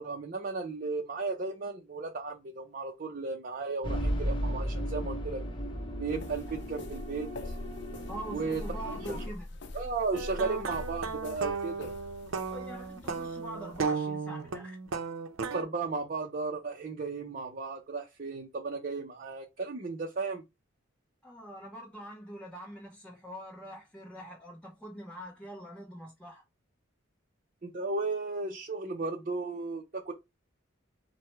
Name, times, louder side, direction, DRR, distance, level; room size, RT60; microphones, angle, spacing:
voice 1, 0.0-5.4 6.0-7.5 8.3-9.2 9.7-11.9 15.5-20.4 27.6-30.1, right 3 dB, 45° right, 0.5 m, -35 dB
sound 1, 3.8-9.3, equal, 25° left, 0.9 m, -35 dB
sound 2, 6.1-13.8, left 2 dB, 60° left, 0.6 m, -44 dB
voice 2, 8.1-9.4 12.4-14.8 21.2-26.4, right 1 dB, 5° left, 1.0 m, -44 dB
sound 3, 10.1-15.6, right 5 dB, 85° right, 0.6 m, -35 dB
4.7 x 2.2 x 4.5 m
head